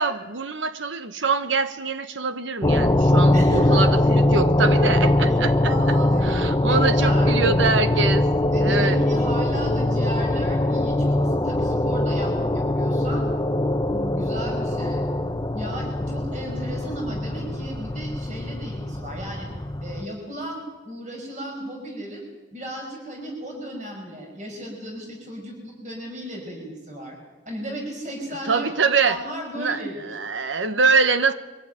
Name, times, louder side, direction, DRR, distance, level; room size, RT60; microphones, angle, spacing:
voice 1, 0.0-5.7 6.2-8.2 8.6-9.0 28.5-29.2 29.5-31.3, right 4 dB, 90° right, 10 dB, 1.1 m, -24 dB
sound 1, 2.6-20.1, left 1 dB, 20° left, 0.7 m, -22 dB
voice 2, 3.3-3.8 5.3-5.4 5.6-6.3 6.6-7.4 8.5-13.2 13.9-15.0 15.5-19.5 19.8-20.6 20.8-22.3 22.5-27.2 27.5-30.1, right 1 dB, 40° right, 1 dB, 5.4 m, -35 dB
23.5 x 15.5 x 9.1 m, 1.2 s
head